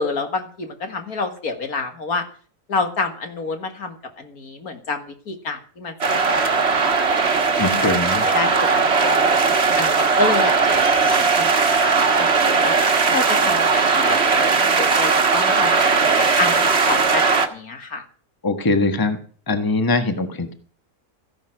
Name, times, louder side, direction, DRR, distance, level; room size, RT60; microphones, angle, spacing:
voice 1, 0.0-2.2 2.7-6.7 7.0-9.3 9.8-11.5 11.8-12.7 13.1-18.0, left 3 dB, 65° left, 6 dB, 2.3 m, -28 dB
sound 1, 6.0-17.5, right 4 dB, 45° right, 1.6 m, -18 dB
voice 2, 7.6-8.3 18.4-19.2 19.5-20.5, left 3 dB, 15° left, 8 dB, 1.3 m, -21 dB
14.5 x 10.5 x 6.3 m, 0.43 s
omnidirectional pair, 1.7 m